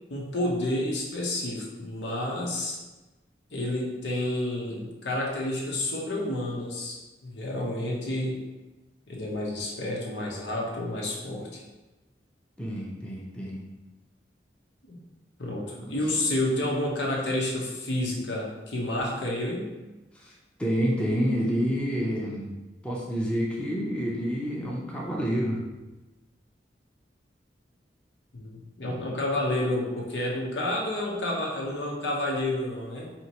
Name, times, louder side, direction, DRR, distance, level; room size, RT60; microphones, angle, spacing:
voice 1, 0.1-2.8 3.5-8.4 9.1-11.6 14.9-15.0 15.4-19.7 28.3-33.1, left 1 dB, 85° left, -3 dB, 0.9 m, -30 dB
voice 2, 12.6-13.6 20.2-20.3 20.6-22.5 22.8-25.6 28.8-29.1, equal, 5° left, -4 dB, 0.5 m, -28 dB
4.3 x 2.8 x 2.9 m, 1.1 s
head